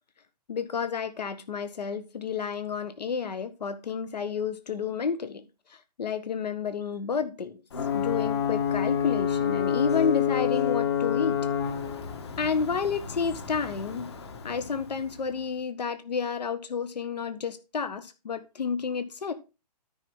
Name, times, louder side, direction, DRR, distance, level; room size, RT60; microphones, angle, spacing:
voice 1, 0.5-5.4 5.7-7.6 7.9-11.4 12.4-14.1 14.4-19.3, left 6 dB, 80° left, 1.4 m, -30 dB
Ocean / Boat Water vehicle / Alarm, 7.7-15.3, left 8 dB, 40° left, 1.4 m, -29 dB
13.0 x 5.8 x 3.7 m
hypercardioid pair, 180°, 21 cm